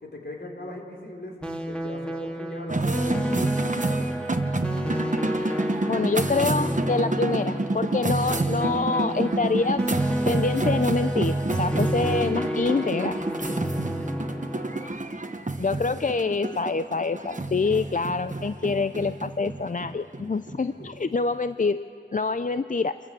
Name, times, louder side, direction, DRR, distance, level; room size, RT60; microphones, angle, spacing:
voice 1, 0.0-3.8 14.5-14.8 15.8-16.0 20.8-21.0, left 1 dB, 65° left, -1 dB, 3.9 m, -40 dB
sound 1, 1.4-14.9, equal, 5° left, 2.2 m, -31 dB
sound 2, 2.7-21.3, right 2 dB, 40° right, 1.0 m, -28 dB
voice 2, 5.9-9.9 10.3-13.2 15.6-23.0, left 4 dB, 45° left, 12 dB, 0.4 m, -26 dB
27.0 x 14.5 x 7.7 m, 2.9 s
wide cardioid pair, 45°, 19 cm